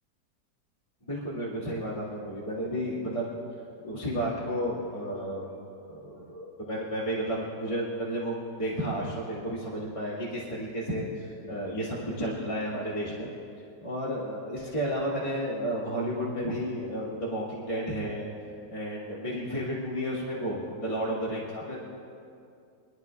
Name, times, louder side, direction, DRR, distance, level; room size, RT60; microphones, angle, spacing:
voice 1, 1.1-3.4 3.8-5.5 5.9-13.3 13.8-18.3 18.7-21.8, equal, 20° left, -8 dB, 2.5 m, -32 dB
25.0 x 10.0 x 3.5 m, 2.5 s
omnidirectional pair, 1.8 m